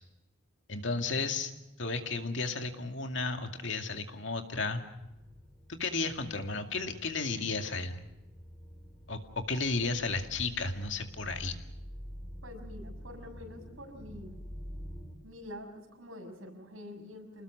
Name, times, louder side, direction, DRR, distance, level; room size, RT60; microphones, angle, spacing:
voice 1, 0.7-1.5 1.8-4.8 5.8-8.0 9.1-11.6, left 3 dB, 65° left, 5 dB, 2.2 m, -33 dB
sound 1, 4.9-15.2, equal, 15° left, 3.2 m, -48 dB
voice 2, 12.4-14.4 15.2-17.4, left 1 dB, 80° right, 3 dB, 6.5 m, -46 dB
28.0 x 20.0 x 6.1 m, 0.97 s
head